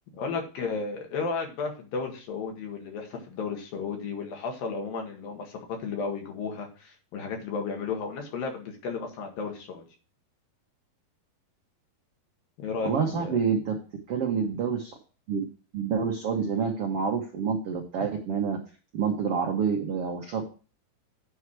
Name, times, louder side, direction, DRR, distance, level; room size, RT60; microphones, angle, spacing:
voice 1, 0.2-9.8 12.6-13.4, left 5 dB, 70° left, 2 dB, 3.5 m, -33 dB
voice 2, 12.8-13.8 14.1-14.9 15.3-15.4 15.7-18.6 18.9-20.5, right 6 dB, 80° right, 2 dB, 1.3 m, -27 dB
9.5 x 4.8 x 6.0 m, 0.36 s
omnidirectional pair, 4.4 m